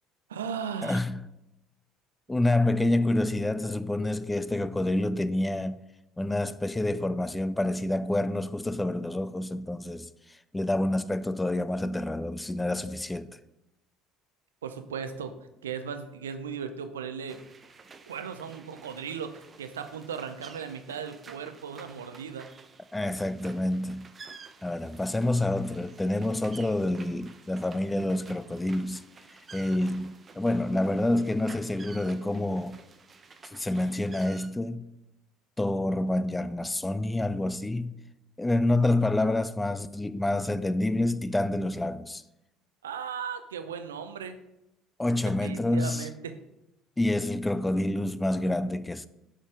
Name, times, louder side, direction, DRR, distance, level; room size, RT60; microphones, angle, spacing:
voice 1, 0.3-1.0 14.6-15.4 15.6-17.4 18.1-22.5 42.8-44.4 45.4-46.4, right 7 dB, 80° right, 0.5 m, -37 dB
voice 2, 0.8-1.2 2.3-5.8 6.2-10.1 10.5-13.3 22.9-24.1 24.6-29.0 29.5-32.8 33.5-34.9 35.6-37.9 38.4-42.2 45.0-46.1 47.0-49.1, left 1 dB, 10° left, 0.4 m, -28 dB
sound 1, 17.3-34.5, right 4 dB, 30° right, 0.7 m, -51 dB
6.4 x 5.2 x 4.8 m
figure-of-eight pair, 60°, 0 cm